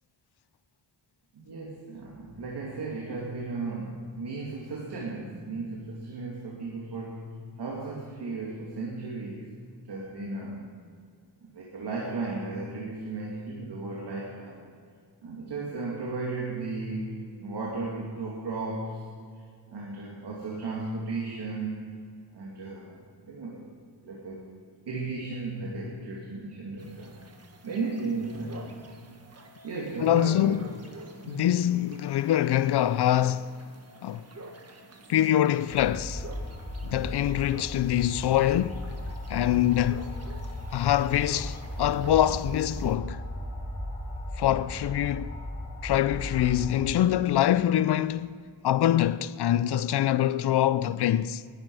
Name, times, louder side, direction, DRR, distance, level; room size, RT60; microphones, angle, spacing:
voice 1, 1.3-9.5 9.8-10.7 11.4-14.7 15.2-19.1 19.7-21.9 22.3-23.6 24.0-24.4 24.9-27.2 27.6-28.8 29.6-30.6 31.2-31.5, right 3 dB, 80° right, 2.6 m, -35 dB
sound 1, 26.8-43.0, right 2 dB, 40° right, 1.5 m, -49 dB
voice 2, 30.0-30.7 31.3-33.6 34.0-34.2 35.1-36.3 36.8-38.9 39.3-40.1 40.7-43.2 44.4-45.4 45.8-51.4, left 12 dB, 75° left, 0.5 m, -24 dB
sound 2, 35.7-46.9, left 1 dB, 55° left, 3.6 m, -36 dB
19.5 x 12.0 x 4.8 m
wide cardioid pair, 150°, 40 cm